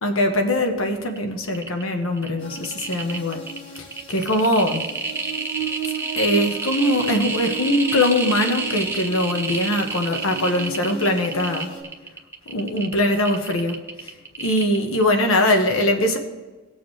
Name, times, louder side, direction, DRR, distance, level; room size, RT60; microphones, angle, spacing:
voice 1, 0.0-3.4 3.8-4.8 5.8-11.7 12.5-14.1 14.4-16.2, left 1 dB, 85° left, 4 dB, 1.4 m, -22 dB
sound 1, 1.1-1.2 1.4-1.8 2.2-15.2 15.5-15.6, right 3 dB, 10° right, 0.8 m, -29 dB
sound 2, 2.4-11.8, right 7 dB, 60° left, 2.1 m, -35 dB
18.5 x 7.1 x 3.3 m, 1.3 s
head